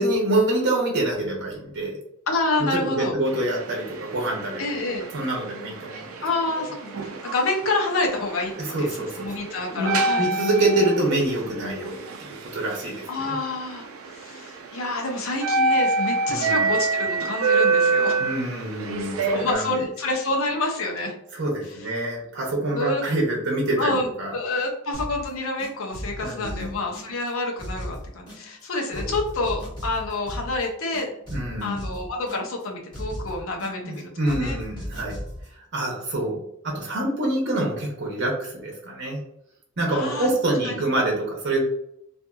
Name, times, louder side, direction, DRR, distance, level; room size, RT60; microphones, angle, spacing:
voice 1, 0.0-2.0 2.7-4.6 5.1-6.2 6.6-6.7 8.6-13.4 16.3-16.7 18.2-19.9 21.3-24.3 26.2-26.7 28.9-29.1 31.3-31.8 33.8-35.2 35.5-39.2 39.8-41.6, right 1 dB, 60° right, -1 dB, 0.8 m, -26 dB
voice 2, 2.3-3.1 4.6-5.1 6.2-8.9 9.2-10.2 13.1-18.2 19.3-21.1 22.7-23.0 23.8-31.1 31.6-34.6 39.9-40.3 40.6-40.8, left 2 dB, 85° left, 1 dB, 0.7 m, -28 dB
sound 1, 3.3-19.5, right 3 dB, 85° right, 0.4 m, -27 dB
sound 2, 24.9-25.3 25.6-27.3 27.6-28.6 28.9-30.6 30.9-32.6 32.9-34.0 34.2-35.5, equal, 25° left, 1.1 m, -36 dB
2.6 x 2.5 x 2.3 m, 0.76 s
head